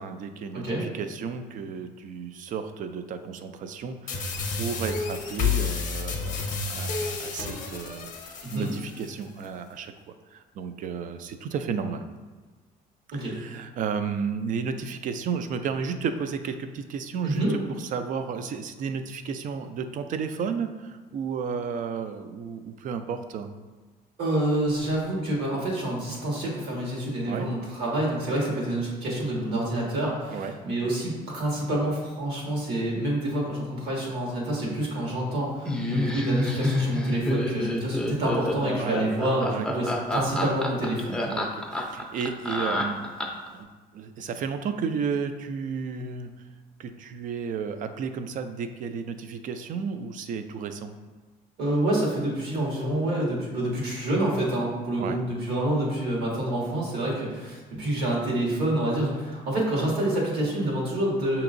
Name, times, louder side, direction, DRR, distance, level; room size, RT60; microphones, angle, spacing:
voice 1, 0.0-9.9 10.3-12.1 13.1-23.5 27.3-27.5 30.3-30.6 38.8-38.9 39.5-39.7 41.3-43.0 43.5-43.7 43.9-46.3 46.8-51.0 55.0-55.2, right 6 dB, 50° right, 9 dB, 0.4 m, -33 dB
sound 1, 4.1-9.1, left 5 dB, 50° left, 0.6 m, -30 dB
voice 2, 17.2-17.5 24.2-41.3 51.6-61.4, right 1 dB, 80° right, -3 dB, 1.5 m, -27 dB
Laughter, 35.7-43.5, left 1 dB, 5° left, 0.5 m, -28 dB
6.0 x 2.9 x 2.5 m, 1.3 s
cardioid pair, 120°, 17 cm